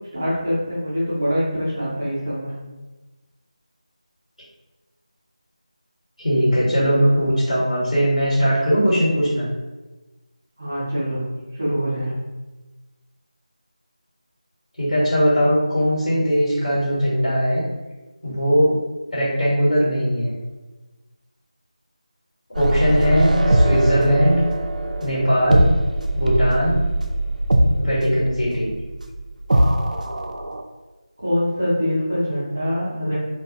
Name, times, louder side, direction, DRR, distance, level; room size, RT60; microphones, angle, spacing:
voice 1, 0.1-2.5 10.6-12.1 31.2-33.2, equal, 15° right, -8 dB, 0.3 m, -24 dB
voice 2, 6.2-9.5 14.8-17.6 18.2-18.7 19.1-20.3 22.5-24.4 25.0-25.6 26.1-26.8 27.8-28.7, equal, 75° left, -9 dB, 1.3 m, -19 dB
sound 1, 22.5-30.6, right 1 dB, 85° right, 0.3 m, -21 dB
2.3 x 2.2 x 2.7 m, 1.2 s
figure-of-eight pair, 180°, 4 cm